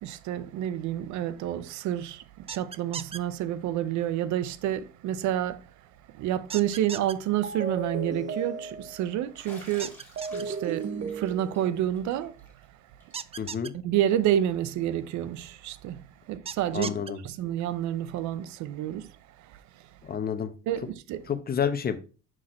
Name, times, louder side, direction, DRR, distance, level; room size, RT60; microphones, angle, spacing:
voice 1, 0.0-5.6 6.1-9.9 10.3-12.4 13.8-16.9 17.2-19.1 19.5-19.6 20.7-21.2, right 11 dB, 75° right, 0.8 m, -29 dB
sound 1, 2.5-3.2 6.5-7.1 9.8-10.4 13.1-13.7 16.5-17.1, right 6 dB, 20° right, 0.4 m, -36 dB
Bathtub (filling or washing), 7.1-7.5 7.8-7.9 9.3-12.7 13.0-13.1 13.4-13.5 14.9-15.0 16.7-16.8, left 1 dB, 5° left, 4.0 m, -52 dB
sound 2, 7.4-9.1 10.2-11.9, right 5 dB, 40° right, 1.0 m, -35 dB
voice 2, 13.4-13.7 16.7-17.2 20.0-20.5 21.3-22.0, left 7 dB, 30° left, 1.0 m, -29 dB
6.2 x 6.0 x 3.1 m
cardioid pair, 105°, 29 cm